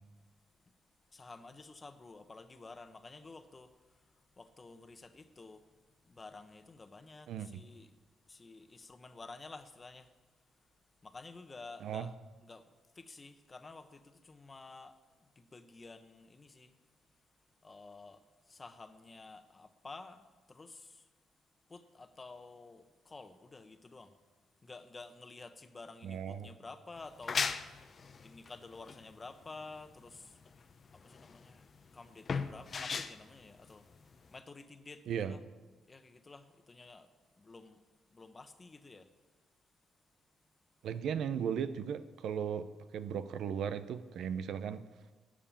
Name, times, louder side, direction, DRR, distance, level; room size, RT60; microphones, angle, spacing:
voice 1, 1.1-5.7 6.0-7.9 8.3-10.1 11.0-12.1 12.4-12.7 12.9-16.8 17.6-21.1 21.7-24.1 24.6-33.9 34.3-35.4 35.9-37.8 38.1-39.1, left 3 dB, 25° left, 1.1 m, -52 dB
voice 2, 26.0-26.5 35.1-35.3 40.8-44.9, right 8 dB, 75° right, 0.7 m, -36 dB
sound 1, 27.0-34.4, left 5 dB, 45° left, 0.7 m, -39 dB
12.5 x 7.5 x 8.8 m
cardioid pair, 90°, 0 cm